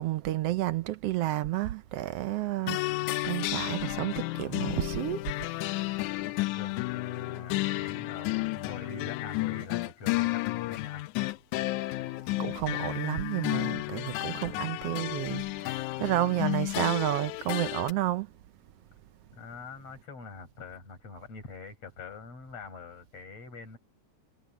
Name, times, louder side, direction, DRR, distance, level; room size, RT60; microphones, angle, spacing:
voice 1, 0.0-5.3 12.4-18.3, right 15 dB, 75° right, 1.4 m, -31 dB
sound 1, 2.7-17.9, left 20 dB, 85° left, 2.0 m, -32 dB
voice 2, 6.0-11.1 19.3-23.8, left 4 dB, 55° left, 6.9 m, -45 dB
omnidirectional pair, 3.4 m